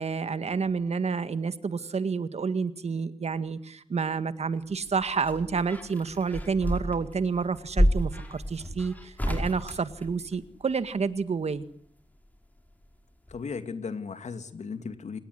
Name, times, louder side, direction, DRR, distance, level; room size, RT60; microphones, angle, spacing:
voice 1, 0.0-11.6, right 5 dB, 70° right, 12 dB, 1.8 m, -29 dB
sound 1, 4.7-10.7 12.2-13.0 13.3-13.4, equal, 15° left, 5.4 m, -30 dB
voice 2, 13.3-15.2, left 5 dB, 85° left, 9 dB, 2.6 m, -36 dB
28.5 x 18.0 x 9.7 m, 0.62 s
wide cardioid pair, 90°, 12 cm